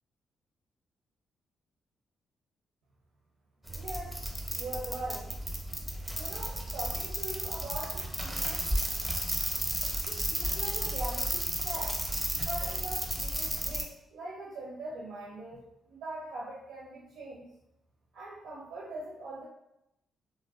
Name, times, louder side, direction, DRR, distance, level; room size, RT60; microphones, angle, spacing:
sound 1, 3.7-13.8, right 1 dB, 10° right, 0.6 m, -33 dB
voice 1, 3.8-4.2 4.5-5.3 6.2-8.8 10.0-12.0 12.3-17.5 18.1-19.5, right 2 dB, 80° right, -5 dB, 0.5 m, -42 dB
2.4 x 2.1 x 2.3 m, 0.84 s
supercardioid pair, 60°, 0 cm